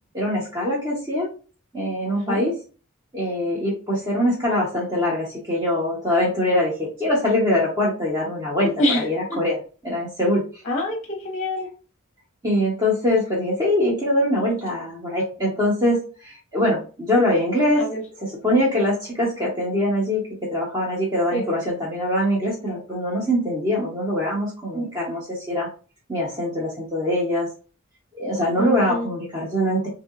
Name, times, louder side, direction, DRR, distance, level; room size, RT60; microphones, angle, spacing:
voice 1, 0.1-1.3 1.7-2.5 3.1-9.6 9.8-10.4 12.4-17.8 18.2-20.2 20.5-25.7 26.1-27.5 28.1-29.9, left 1 dB, 20° right, -6 dB, 0.9 m, -23 dB
voice 2, 10.7-11.7 17.8-18.0 21.3-21.5 28.6-29.1, left 1 dB, 35° left, 1 dB, 0.8 m, -25 dB
3.6 x 2.8 x 2.4 m, 0.36 s
head